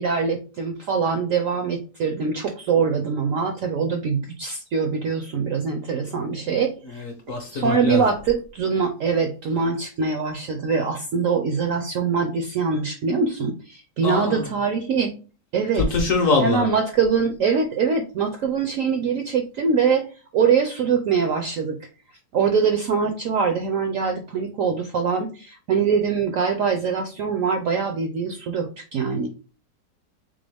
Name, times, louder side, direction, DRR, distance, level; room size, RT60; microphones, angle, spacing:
voice 1, 0.0-7.0 7.5-15.1 15.5-15.8 16.4-20.1 20.3-21.8 22.3-29.3, right 5 dB, 70° right, 0.8 m, -23 dB
voice 2, 6.8-8.1 14.0-14.5 15.7-16.7, left 3 dB, 60° left, 0.9 m, -23 dB
3.8 x 3.6 x 3.3 m
omnidirectional pair, 1.9 m